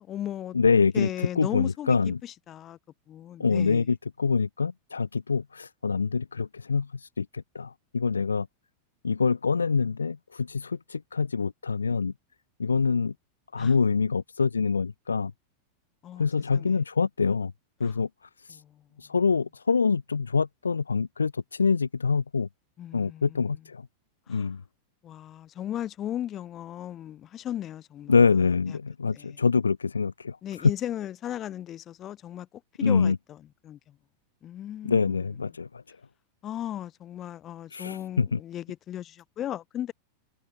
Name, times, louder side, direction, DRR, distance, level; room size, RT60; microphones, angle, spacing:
voice 1, 0.0-0.6 0.9-2.8 3.1-3.8 13.6-13.7 16.0-16.3 16.5-16.8 17.8-17.9 18.5-18.9 22.8-23.6 24.3-24.5 25.0-28.1 28.7-28.8 29.1-29.4 30.4-32.5 32.8-33.4 33.6-34.0 34.4-35.2 36.4-39.9, left 11 dB, 30° left, 1.8 m, -36 dB
voice 2, 0.5-2.2 3.4-8.5 9.0-12.1 12.6-13.1 13.5-15.3 16.2-17.5 17.8-18.1 18.5-18.6 19.0-22.5 22.9-23.9 24.3-24.6 28.1-30.7 32.8-33.2 34.8-36.0 37.7-38.4, left 5 dB, 75° left, 0.3 m, -25 dB
figure-of-eight pair, 90°, 0 cm